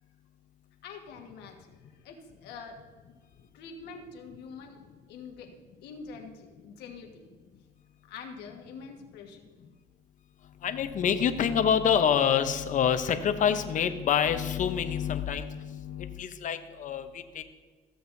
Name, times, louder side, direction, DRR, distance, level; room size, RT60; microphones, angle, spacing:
voice 1, 0.8-1.7 2.0-2.8 3.5-4.8 5.1-5.5 5.8-7.2 8.1-9.4, left 5 dB, 85° left, 2 dB, 1.4 m, -45 dB
voice 2, 10.6-17.4, left 8 dB, 50° left, 9 dB, 0.8 m, -27 dB
15.0 x 7.7 x 2.6 m, 1.4 s
cardioid pair, 110°, 17 cm